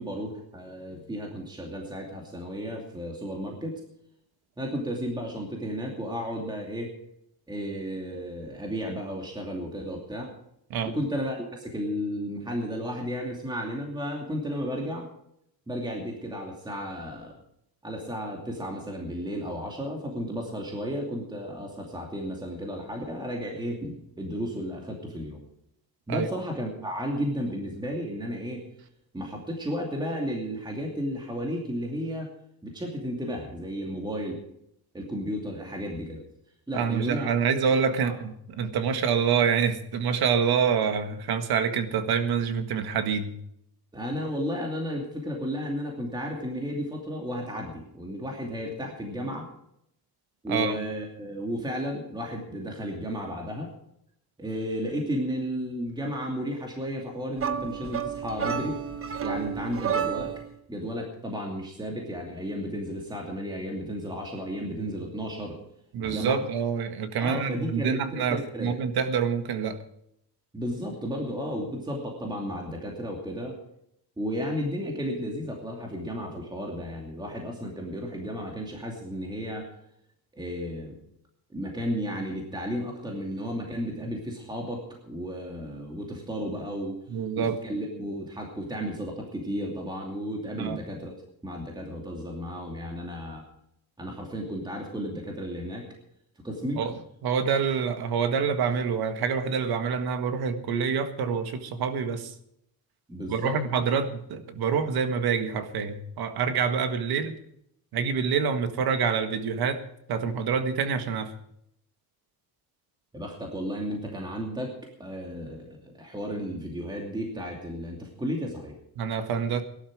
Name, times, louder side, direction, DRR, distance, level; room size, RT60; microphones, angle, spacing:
voice 1, 0.0-3.8 4.6-6.9 7.5-10.3 10.8-15.1 15.7-17.3 17.8-25.4 26.1-28.7 29.1-32.3 32.6-34.4 34.9-36.2 36.7-37.3 38.0-38.1 43.9-49.5 50.4-53.7 54.4-58.8 59.2-60.3 60.7-65.6 66.0-66.4 67.2-68.8 70.5-73.6 74.2-79.7 80.3-81.0 81.5-87.0 87.4-91.1 91.4-93.5 94.0-95.9 96.4-96.8 103.1-103.6 113.1-118.7, equal, 10° right, 0 dB, 2.6 m, -33 dB
voice 2, 36.7-43.3 50.5-50.8 65.9-69.8 87.1-87.6 90.6-90.8 96.8-96.9 97.2-102.3 103.3-107.3 107.9-109.8 110.1-111.3 119.0-119.6, right 6 dB, 70° right, 8 dB, 1.7 m, -26 dB
sound 1, 57.4-60.5, right 7 dB, 35° right, 1.1 m, -31 dB
18.0 x 11.5 x 4.8 m, 0.75 s
cardioid pair, 145°, 38 cm